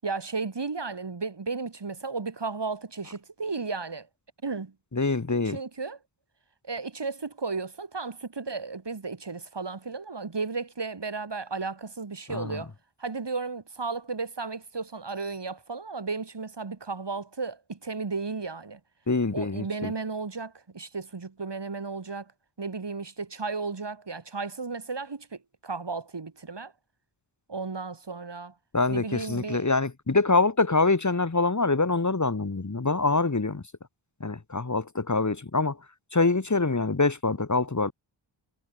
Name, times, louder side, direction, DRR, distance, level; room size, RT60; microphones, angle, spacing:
voice 1, 0.0-4.1 4.4-4.7 5.4-6.0 6.6-12.7 13.0-18.8 19.3-22.3 22.6-25.3 25.6-26.7 27.5-28.5 28.9-29.7, right 4 dB, 55° right, 7.9 m, -34 dB
voice 2, 4.9-5.6 12.3-12.6 19.1-19.9 28.7-33.6 34.2-35.8 36.1-37.9, left 3 dB, 35° left, 2.7 m, -25 dB
wide cardioid pair, 60°, 48 cm